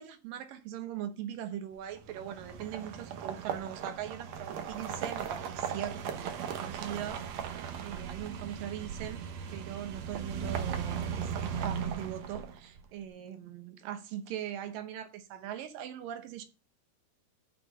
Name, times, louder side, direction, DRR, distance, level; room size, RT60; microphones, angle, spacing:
voice 1, 0.0-7.2 7.8-16.4, right 10 dB, 70° right, 2.3 m, -40 dB
sound 1, 2.0-12.8, right 7 dB, 85° right, 1.5 m, -37 dB
6.6 x 5.9 x 6.7 m
omnidirectional pair, 4.6 m